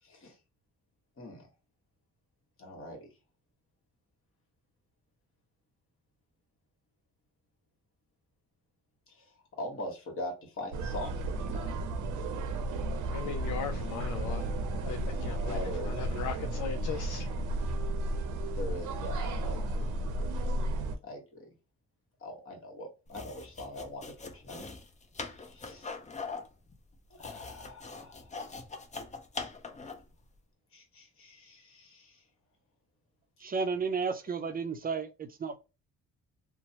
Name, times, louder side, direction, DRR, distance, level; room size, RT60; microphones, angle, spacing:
voice 1, 0.0-0.4 1.2-1.5 2.6-3.1 9.1-11.7 15.4-15.9 18.5-20.0 21.0-21.5 22.2-24.7 25.3-25.9 27.1-28.5 30.7-32.3 33.4-33.6, left 1 dB, 45° left, 1.4 m, -43 dB
sound 1, 10.7-21.0, right 1 dB, 85° right, 0.7 m, -33 dB
voice 2, 13.1-14.4 14.9-17.3, left 7 dB, 75° left, 0.5 m, -38 dB
sound 2, 23.1-30.1, left 4 dB, 25° left, 0.5 m, -42 dB
voice 3, 33.4-35.6, right 5 dB, 30° right, 0.5 m, -33 dB
2.9 x 2.1 x 2.9 m
cardioid pair, 90°, 30 cm